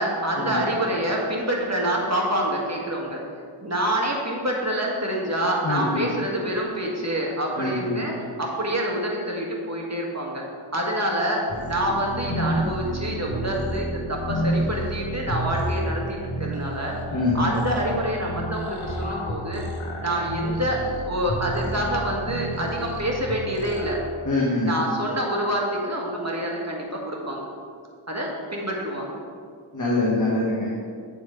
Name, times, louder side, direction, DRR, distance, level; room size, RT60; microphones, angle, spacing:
voice 1, 0.0-10.4 10.7-16.9 17.3-19.6 20.0-24.0 24.6-27.5 28.1-29.2, right 1 dB, 30° right, -2 dB, 1.8 m, -27 dB
voice 2, 5.6-6.0 7.6-8.0 17.1-17.4 24.2-24.7 29.7-30.7, left 2 dB, 35° left, -6 dB, 1.6 m, -24 dB
sound 1, 11.5-24.0, right 1 dB, 70° left, 1.4 m, -30 dB
8.6 x 7.2 x 3.8 m, 2.1 s
wide cardioid pair, 45°, 49 cm